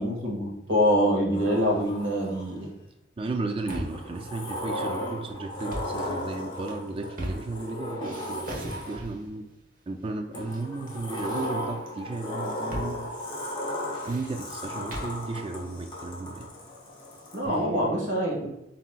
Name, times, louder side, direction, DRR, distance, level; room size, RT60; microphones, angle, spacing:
voice 1, 0.0-2.7 17.3-18.5, equal, 90° right, -2 dB, 1.5 m, -25 dB
Sliding door, 1.3-2.7 3.7-9.2 10.3-17.4, left 1 dB, 25° left, 0.9 m, -36 dB
voice 2, 3.2-9.5 9.9-13.1 14.1-16.5 17.4-18.0, right 3 dB, 30° right, 5 dB, 0.3 m, -34 dB
sound 1, 3.5-4.1 5.5-6.0 6.5-7.7 8.0-9.3 10.0-10.6 10.9-11.9 12.7-12.9 13.2-13.3 13.7-15.2, equal, 45° right, 1.0 m, -39 dB
7.2 x 2.9 x 2.2 m, 0.88 s
head